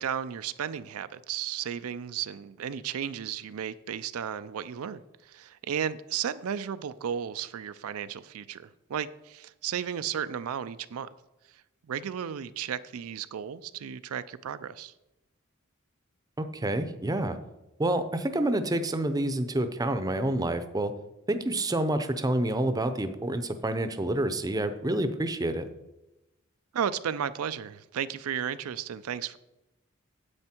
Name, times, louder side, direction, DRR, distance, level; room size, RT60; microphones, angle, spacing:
voice 1, 0.0-11.1 11.5-11.6 11.9-14.9 26.7-29.4, right 8 dB, 80° right, 13 dB, 0.4 m, -34 dB
voice 2, 16.4-17.4 17.8-20.9 21.3-25.7, right 1 dB, 15° right, 10 dB, 0.6 m, -28 dB
9.7 x 7.9 x 4.4 m, 0.96 s
head